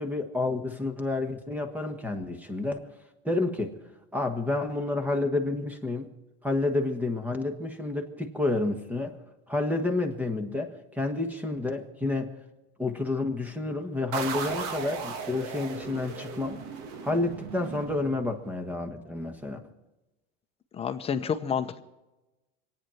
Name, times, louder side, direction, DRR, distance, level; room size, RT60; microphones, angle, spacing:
voice 1, 0.0-2.9 3.2-3.7 4.1-6.1 6.4-9.2 9.5-12.3 12.8-16.6 17.0-19.6, left 2 dB, 5° right, 6 dB, 1.5 m, -29 dB
sound 1, 14.1-18.6, right 6 dB, 60° right, 2.0 m, -36 dB
voice 2, 20.7-21.8, left 7 dB, 20° left, 7 dB, 0.9 m, -29 dB
25.0 x 9.3 x 5.8 m, 1.0 s
supercardioid pair, 150°, 31 cm